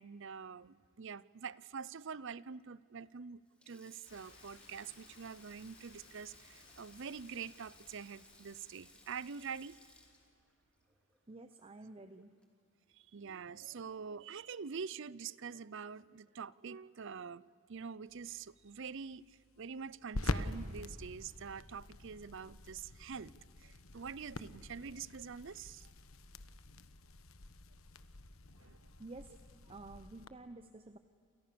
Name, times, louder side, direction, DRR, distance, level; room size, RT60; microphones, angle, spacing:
voice 1, 0.0-3.4 3.7-9.8 13.1-17.4 17.7-19.2 19.6-23.3 23.6-25.9 28.6-28.8, right 6 dB, 60° right, 20 dB, 0.6 m, -45 dB
Sink (filling or washing), 3.5-11.9 12.2-12.4 13.6-13.9, left 1 dB, 5° left, 3.3 m, -63 dB
sound 1, 4.0-10.3, left 3 dB, 60° left, 6.5 m, -62 dB
voice 2, 11.3-12.4 29.0-29.3 29.6-31.0, right 2 dB, 25° right, 10 dB, 0.8 m, -51 dB
sound 2, 18.1-30.3, left 2 dB, 75° left, 1.2 m, -45 dB
29.0 x 28.5 x 6.9 m, 2.4 s
head